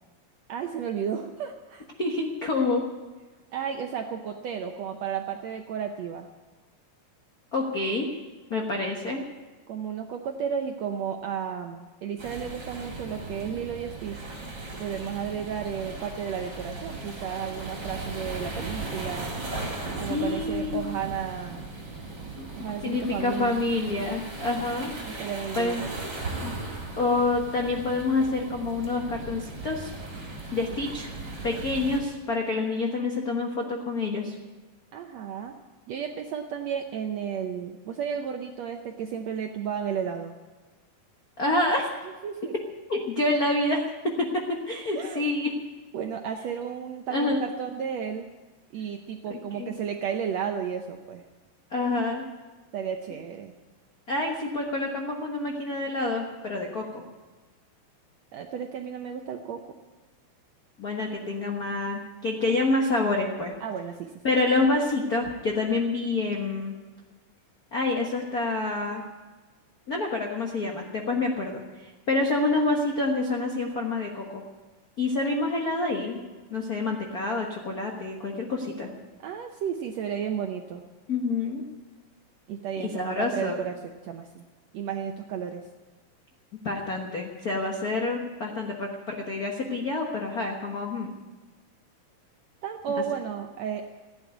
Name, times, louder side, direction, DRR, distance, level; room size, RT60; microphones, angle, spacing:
voice 1, 0.5-1.8 3.5-6.3 9.7-14.2 14.8-19.3 20.0-21.7 22.6-24.2 25.2-25.9 34.9-35.5 35.9-40.4 42.2-42.5 44.9-45.2 45.9-48.3 48.7-51.2 52.7-53.5 58.3-59.7 63.6-64.1 79.2-80.8 82.5-84.4 84.7-85.6 92.6-93.9, right 7 dB, 75° right, 4 dB, 1.6 m, -33 dB
voice 2, 2.0-2.8 7.5-8.1 8.5-9.2 20.0-20.9 22.4-22.5 22.8-24.9 25.6-25.8 26.4-26.5 27.0-29.9 30.5-31.1 31.4-34.4 41.4-41.9 42.9-45.5 47.1-47.4 49.3-49.7 51.7-52.2 54.1-57.0 60.8-63.5 64.2-66.8 67.7-69.0 69.9-74.4 75.0-76.2 76.5-78.9 81.1-81.6 82.8-83.6 86.6-91.1 92.9-93.0, left 2 dB, 75° left, 1 dB, 0.8 m, -27 dB
sound 1, 12.2-32.0, right 2 dB, 30° right, 3.8 m, -37 dB
15.5 x 9.7 x 9.4 m, 1.3 s
omnidirectional pair, 4.0 m